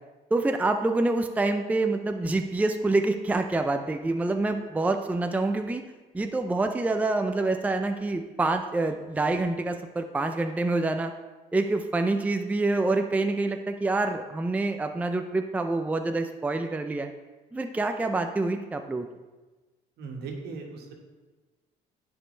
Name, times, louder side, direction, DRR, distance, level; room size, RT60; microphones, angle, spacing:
voice 1, 0.3-5.8 6.1-11.1 11.5-17.1 17.5-19.1, right 2 dB, 10° right, 6 dB, 0.5 m, -26 dB
voice 2, 20.0-20.9, right 4 dB, 70° right, 1 dB, 1.7 m, -38 dB
14.5 x 5.3 x 3.3 m, 1.2 s
cardioid pair, 110°, 17 cm